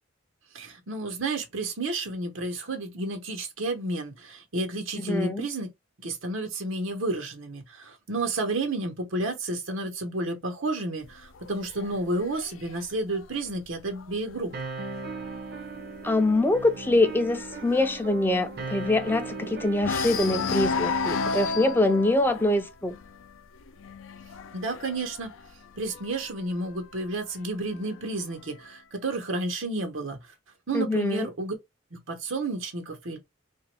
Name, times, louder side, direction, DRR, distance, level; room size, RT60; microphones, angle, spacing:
voice 1, 0.5-5.7 6.0-14.5 24.5-25.3 25.8-30.2 30.7-31.5 31.9-33.2, right 2 dB, 90° right, 1.1 m, -31 dB
voice 2, 5.0-5.5 16.0-23.0 30.7-31.3, left 2 dB, 10° left, 0.3 m, -24 dB
sound 1, 11.0-14.6 15.1-15.4 15.6-15.7 16.1-19.4 19.8-26.3 27.2-28.2, left 4 dB, 85° left, 0.4 m, -33 dB
sound 2, 14.5-22.6, right 4 dB, 55° right, 0.6 m, -38 dB
2.9 x 2.5 x 3.2 m
head